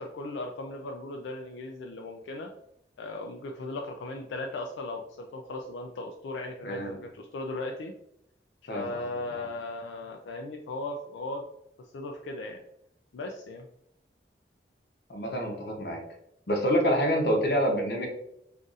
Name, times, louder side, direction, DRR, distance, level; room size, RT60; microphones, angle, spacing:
voice 1, 0.0-2.5 3.0-7.9 8.6-11.4 11.8-12.6 13.1-13.7, left 2 dB, 85° left, 2 dB, 0.3 m, -37 dB
voice 2, 6.6-7.0 8.7-9.0 9.3-9.4 15.1-16.0 16.5-18.1, equal, 60° left, 2 dB, 0.8 m, -27 dB
3.9 x 2.5 x 2.4 m, 0.78 s
head